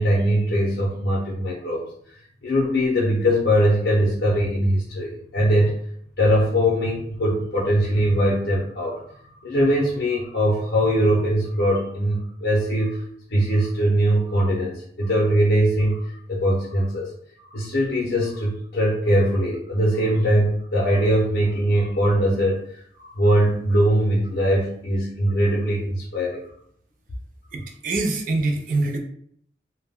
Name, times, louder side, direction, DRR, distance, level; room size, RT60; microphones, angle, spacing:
voice 1, 0.0-5.7 6.2-9.0 9.4-13.0 13.3-17.1 17.4-26.4, equal, 70° left, -5 dB, 0.6 m, -21 dB
voice 2, 27.5-29.0, right 2 dB, 50° right, 2 dB, 0.4 m, -24 dB
2.1 x 2.0 x 3.5 m, 0.66 s
head